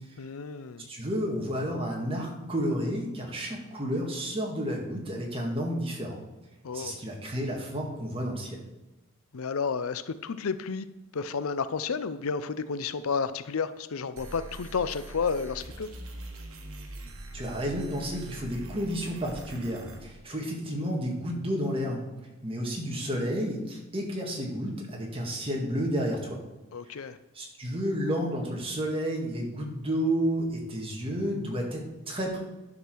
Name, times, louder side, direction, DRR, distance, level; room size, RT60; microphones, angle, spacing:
voice 1, 0.2-0.9 6.6-7.0 9.3-10.9 11.1-15.9 26.7-27.2, left 5 dB, 75° left, 13 dB, 0.5 m, -31 dB
voice 2, 0.9-6.2 6.7-8.6 17.3-22.1 22.4-26.4 26.9-27.1 27.3-32.4, equal, 25° right, 0 dB, 1.9 m, -31 dB
sound 1, 14.2-20.0, right 2 dB, 75° right, 1.5 m, -43 dB
11.0 x 4.9 x 6.3 m, 1.1 s
head